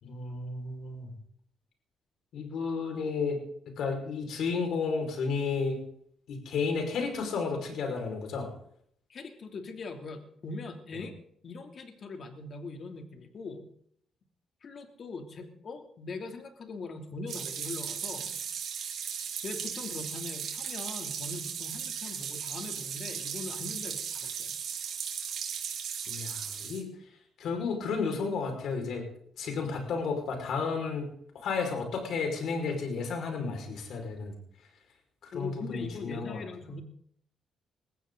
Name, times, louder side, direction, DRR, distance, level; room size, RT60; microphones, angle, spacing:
voice 1, 0.0-1.1 2.3-3.4 3.8-5.8 6.3-8.5 26.1-26.9 27.4-29.0 29.4-31.1 31.4-34.3 35.2-36.4, left 4 dB, 70° left, 3 dB, 5.2 m, -32 dB
voice 2, 9.1-11.1 11.4-13.6 14.6-18.4 19.4-24.6 35.3-36.8, left 3 dB, 55° left, 5 dB, 3.0 m, -41 dB
sound 1, 17.3-26.8, right 8 dB, 70° right, 4.8 m, -36 dB
21.5 x 15.0 x 4.0 m, 0.66 s
cardioid pair, 75°, 0 cm